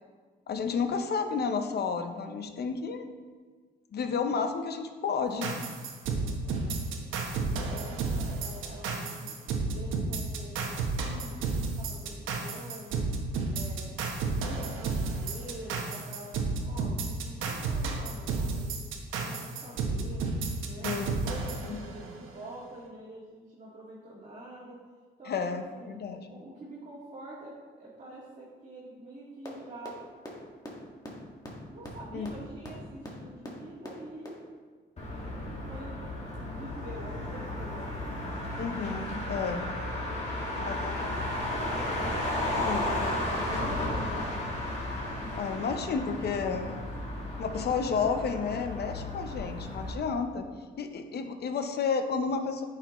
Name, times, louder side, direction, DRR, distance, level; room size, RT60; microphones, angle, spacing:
voice 1, 0.5-3.1 3.9-5.5 20.8-21.2 21.7-21.8 25.3-26.3 32.1-32.3 38.6-39.7 40.6-40.9 42.6-42.9 45.3-46.8 47.4-50.5 50.8-52.6, left 5 dB, 55° left, 7 dB, 0.8 m, -31 dB
sound 1, 5.4-22.3, right 4 dB, 85° right, 1.0 m, -32 dB
voice 2, 6.2-7.0 7.5-9.4 9.7-13.0 13.5-14.0 14.3-16.3 16.7-18.8 19.1-20.3 20.7-24.8 25.2-26.0 26.3-30.0 31.7-34.3 35.7-36.0 36.3-38.6 40.0-41.1 42.4-44.5, right 1 dB, 35° right, -7 dB, 1.8 m, -46 dB
sound 2, 29.4-29.5 29.8-29.9 30.2-30.3 30.6-30.7 31.0-31.1 31.4-31.5 31.8-31.9 32.2-32.3 32.6-32.7 33.0-33.1 33.4-33.5 33.8-33.9 34.2-34.3, left 1 dB, 20° left, 1.8 m, -40 dB
Motor vehicle (road), 35.0-49.9, left 1 dB, 35° left, 2.1 m, -34 dB
9.0 x 5.7 x 3.1 m, 1.5 s
cardioid pair, 90°, 20 cm